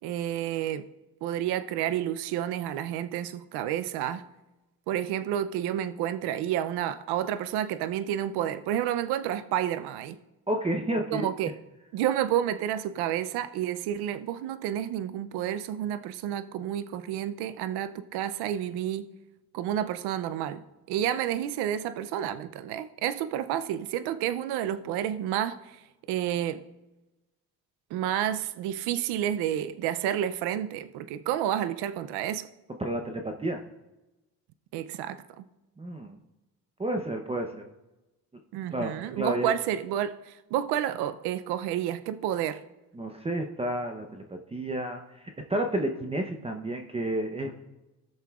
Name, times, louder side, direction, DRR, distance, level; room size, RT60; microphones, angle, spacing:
voice 1, 0.0-0.9 1.2-4.3 4.9-10.2 11.1-11.6 11.9-19.1 19.5-25.8 26.1-26.6 27.9-32.5 34.7-35.4 38.5-42.6, right 11 dB, 90° right, 0.6 m, -30 dB
voice 2, 10.5-11.3 32.8-33.6 35.8-36.2 36.8-37.6 38.7-39.6 42.9-47.6, right 1 dB, 15° right, 0.7 m, -31 dB
19.0 x 6.6 x 2.4 m
cardioid pair, 100°, 38 cm